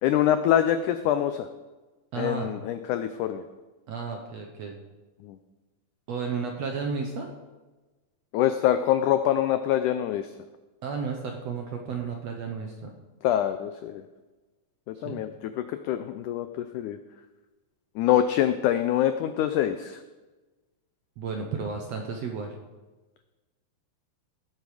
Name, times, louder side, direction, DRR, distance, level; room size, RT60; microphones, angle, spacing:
voice 1, 0.0-1.5 2.2-3.4 5.2-5.4 8.3-10.3 13.2-14.0 14.9-15.3 15.6-17.0 18.0-20.0, left 11 dB, 85° left, 9 dB, 1.7 m, -25 dB
voice 2, 2.1-2.5 3.9-4.8 6.1-7.3 10.8-12.9 14.9-15.2 21.2-22.5, right 5 dB, 65° right, 2 dB, 1.7 m, -33 dB
17.5 x 8.4 x 4.9 m, 1.2 s
omnidirectional pair, 4.2 m